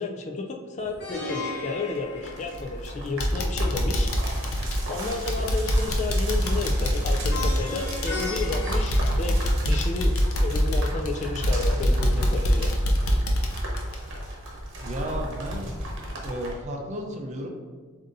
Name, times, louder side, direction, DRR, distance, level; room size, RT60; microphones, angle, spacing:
voice 1, 0.0-4.1 4.5-10.1 10.4-12.7, left 3 dB, 35° left, 2 dB, 0.4 m, -32 dB
sound 1, 0.8-16.5, equal, 60° right, 1.0 m, -35 dB
Plucked string instrument, 1.0-3.1 7.3-9.9, left 2 dB, 55° left, 0.9 m, -36 dB
sound 2, 2.5-2.9 3.2-14.8 15.1-15.2 15.7-15.8, equal, 85° left, 0.6 m, -25 dB
voice 2, 14.8-15.7 16.2-17.5, equal, 35° right, 2 dB, 0.6 m, -33 dB
7.3 x 2.7 x 2.6 m, 1.5 s
head